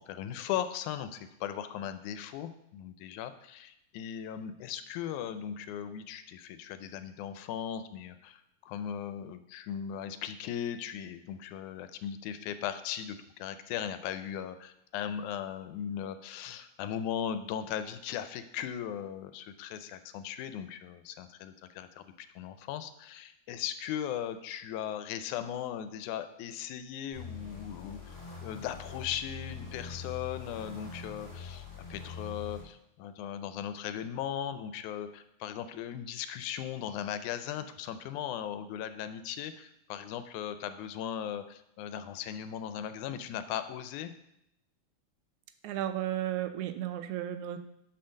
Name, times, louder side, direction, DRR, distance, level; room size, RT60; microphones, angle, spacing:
voice 1, 0.0-22.1 22.4-28.0 28.4-31.7 31.9-44.1, left 9 dB, 90° left, 11 dB, 2.0 m, -38 dB
sound 1, 27.1-32.6, left 5 dB, 10° left, 0.8 m, -43 dB
voice 2, 45.6-47.6, right 12 dB, 85° right, 9 dB, 2.0 m, -33 dB
5.6 x 4.4 x 6.3 m, 0.80 s
omnidirectional pair, 3.4 m